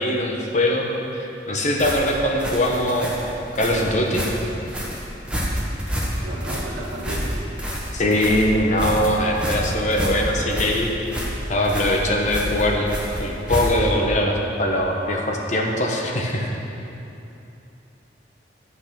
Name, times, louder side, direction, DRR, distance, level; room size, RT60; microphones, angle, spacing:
voice 1, 0.0-3.1 3.6-4.2 7.9-10.9 11.5-12.9 13.2-16.6, left 1 dB, 40° left, 0 dB, 1.2 m, -22 dB
sound 1, 1.8-14.0, equal, 5° right, 1.3 m, -28 dB
voice 2, 6.2-7.4, right 1 dB, 50° right, -5 dB, 1.9 m, -34 dB
10.5 x 6.4 x 6.1 m, 2.9 s
head